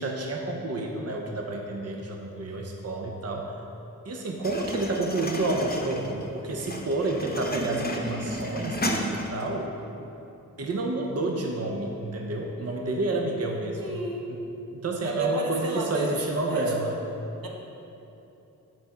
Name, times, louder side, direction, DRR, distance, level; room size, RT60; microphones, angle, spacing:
voice 1, 0.0-3.5 4.0-9.7 10.6-14.0 14.3-14.4 14.7-17.0, right 2 dB, 45° right, 1 dB, 0.8 m, -29 dB
sound 1, 4.4-9.5, equal, 25° left, 0.9 m, -33 dB
voice 2, 13.8-14.2 15.0-16.6 17.4-17.5, right 1 dB, 75° right, -1 dB, 1.1 m, -32 dB
6.0 x 4.4 x 6.0 m, 2.9 s
cardioid pair, 45°, 35 cm